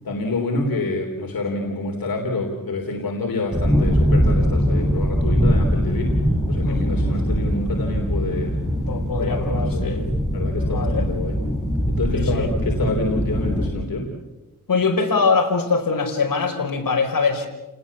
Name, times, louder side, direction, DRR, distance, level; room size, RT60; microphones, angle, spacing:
voice 1, 0.0-6.2 6.5-8.6 9.2-10.0 10.3-11.4 11.9-14.1, left 2 dB, 85° left, 1 dB, 3.6 m, -27 dB
sound 1, 3.5-13.7, equal, ahead, 4.0 m, -22 dB
voice 2, 8.8-10.0 10.6-11.1 12.1-12.5 14.7-17.5, left 4 dB, 70° left, 2 dB, 4.9 m, -22 dB
29.5 x 20.0 x 7.2 m, 1.1 s
wide cardioid pair, 110°, 35 cm